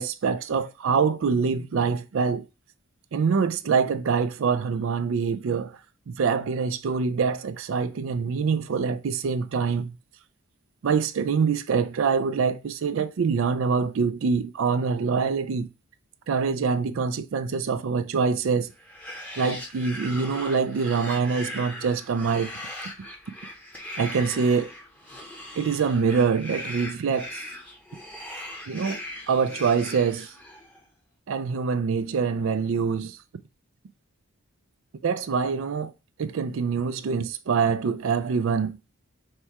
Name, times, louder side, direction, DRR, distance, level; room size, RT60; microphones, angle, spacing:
voice 1, 0.0-2.4 3.1-5.8 6.1-10.0 10.8-15.7 16.3-18.7 19.4-22.5 24.0-24.7 25.6-27.4 28.7-29.0 29.3-30.3 31.3-33.2 35.0-35.9 36.2-38.8, right 5 dB, 60° right, 0.4 m, -25 dB
sound 1, 18.8-30.8, left 1 dB, 5° left, 0.8 m, -39 dB
4.2 x 2.3 x 4.6 m
head